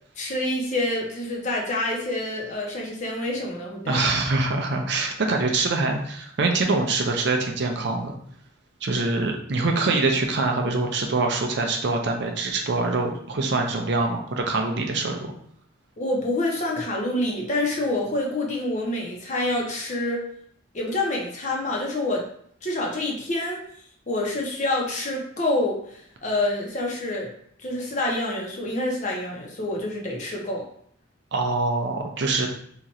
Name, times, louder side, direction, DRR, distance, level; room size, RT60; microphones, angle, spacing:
voice 1, 0.2-4.0 16.0-20.2 20.7-22.2 22.6-23.6 24.1-27.3 27.6-30.6, left 1 dB, 40° left, -1 dB, 0.8 m, -27 dB
voice 2, 3.9-8.2 8.8-15.2 31.3-32.5, right 3 dB, 60° right, 3 dB, 0.5 m, -24 dB
2.9 x 2.4 x 4.1 m, 0.64 s
head